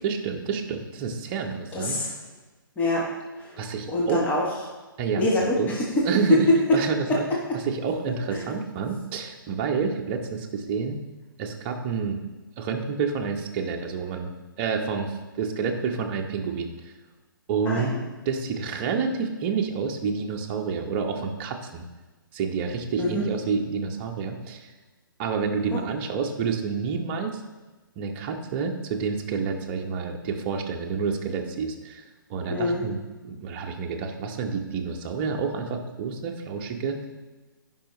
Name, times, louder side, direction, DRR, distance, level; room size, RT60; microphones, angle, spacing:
voice 1, 0.0-2.0 3.6-4.2 5.0-5.3 5.6-5.7 6.0-7.3 7.5-11.0 11.4-12.2 12.6-16.9 17.5-18.0 18.2-21.8 22.3-24.7 25.2-27.4 28.0-32.0 32.3-37.1, right 5 dB, 30° right, 3 dB, 1.0 m, -29 dB
voice 2, 1.7-2.1 2.8-3.1 3.4-3.6 3.9-4.7 5.2-6.4 6.7-6.8 7.1-7.4 8.3-8.4 17.6-18.0 23.0-23.2 25.7-25.8 32.5-32.8, left 1 dB, 15° left, -3 dB, 1.4 m, -24 dB
15.0 x 5.6 x 3.2 m, 1.2 s
figure-of-eight pair, 130°, 12 cm